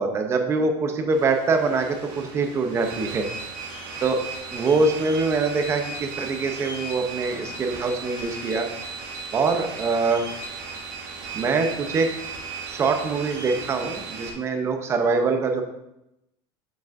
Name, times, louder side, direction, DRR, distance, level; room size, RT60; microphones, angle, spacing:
voice 1, 0.0-3.3 4.0-4.2 4.5-8.7 9.3-10.2 11.3-12.1 12.7-15.6, right 4 dB, 20° right, 5 dB, 0.6 m, -24 dB
sound 1, 1.1-14.3, right 4 dB, 60° right, 1.9 m, -36 dB
7.0 x 5.9 x 2.6 m, 0.87 s
cardioid pair, 165°, 13 cm